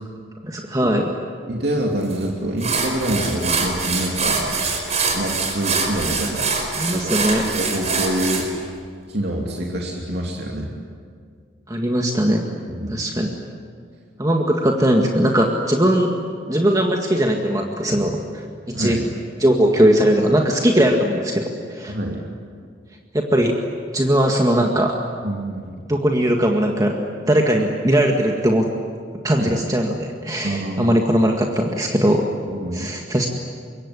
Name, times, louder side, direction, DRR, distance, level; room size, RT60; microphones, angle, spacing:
voice 1, 0.4-1.1 6.7-7.4 11.7-12.4 12.9-13.3 14.2-16.1 16.5-18.4 18.8-19.0 19.4-22.0 23.1-23.5 23.9-25.0 25.9-26.9 27.3-28.7 29.2-30.0 30.2-32.2 32.7-33.3, right 1 dB, 20° right, 1 dB, 1.8 m, -19 dB
voice 2, 1.5-4.6 5.1-6.4 6.8-7.1 7.5-8.5 9.1-10.7 12.7-13.0 18.7-19.1 21.9-22.2 25.2-25.8 29.4-29.5 30.4-31.0 32.5-32.9, right 1 dB, 60° right, -1 dB, 2.9 m, -26 dB
sound 1, 2.1-2.2 2.6-8.5, right 4 dB, 35° right, 5.1 m, -24 dB
25.5 x 23.0 x 9.9 m, 2.1 s
head